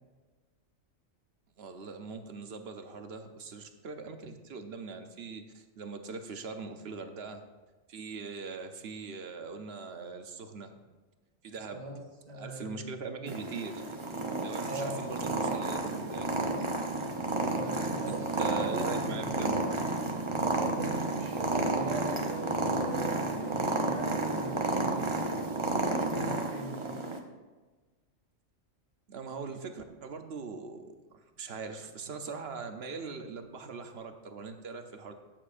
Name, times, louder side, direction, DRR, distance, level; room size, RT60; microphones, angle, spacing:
voice 1, 1.6-7.4 7.9-10.7 11.4-11.9 12.3-13.8 14.4-16.5 18.1-19.5 29.1-35.1, right 4 dB, 55° right, 6 dB, 0.9 m, -41 dB
voice 2, 11.7-12.0 12.3-12.8 14.6-15.0 17.3-19.8 20.3-27.0, right 2 dB, 75° right, 0 dB, 2.4 m, -41 dB
Purr, 13.3-27.2, right 2 dB, 25° right, 0.7 m, -31 dB
13.0 x 9.0 x 2.5 m, 1.3 s
omnidirectional pair, 1.4 m